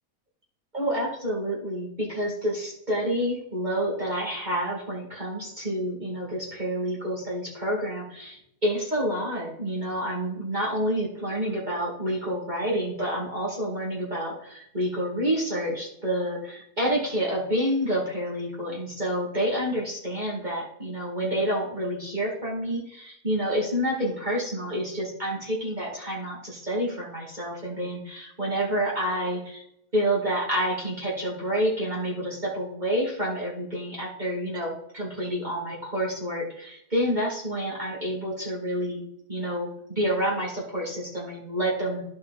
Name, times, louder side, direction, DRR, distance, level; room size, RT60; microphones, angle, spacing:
voice 1, 0.7-29.6 29.9-39.0 39.3-42.0, equal, 30° right, -5 dB, 2.3 m, -28 dB
12.5 x 5.1 x 4.0 m, 0.76 s
omnidirectional pair, 1.5 m